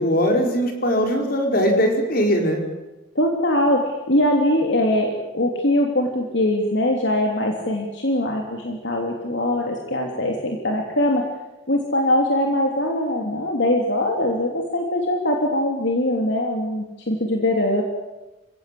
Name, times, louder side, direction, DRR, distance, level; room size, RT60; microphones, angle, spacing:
voice 1, 0.0-2.6, equal, 50° left, 3 dB, 5.2 m, -20 dB
voice 2, 3.1-3.8 4.1-11.2 11.7-17.8, left 1 dB, 70° left, 1 dB, 3.2 m, -22 dB
28.5 x 17.0 x 8.6 m, 1.1 s
head